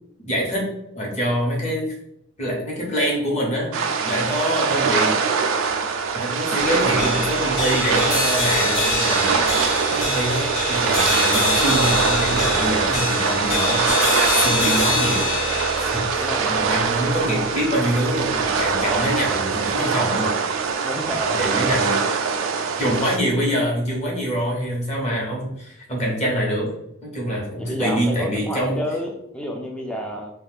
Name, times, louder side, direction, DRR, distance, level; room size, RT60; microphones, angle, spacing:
voice 1, 0.2-0.7 0.9-1.9 2.4-3.7 4.0-5.1 6.1-15.3 15.8-20.3 21.3-22.0 22.8-26.7 27.0-28.8, equal, 35° left, -3 dB, 0.9 m, -25 dB
sound 1, 3.7-23.2, right 5 dB, 75° right, 0.3 m, -23 dB
sound 2, 6.6-19.1, left 2 dB, 85° left, 1.2 m, -25 dB
voice 2, 16.1-16.7 20.8-21.5 27.6-30.3, equal, 5° left, 1 dB, 0.3 m, -30 dB
2.4 x 2.3 x 3.3 m, 0.81 s
head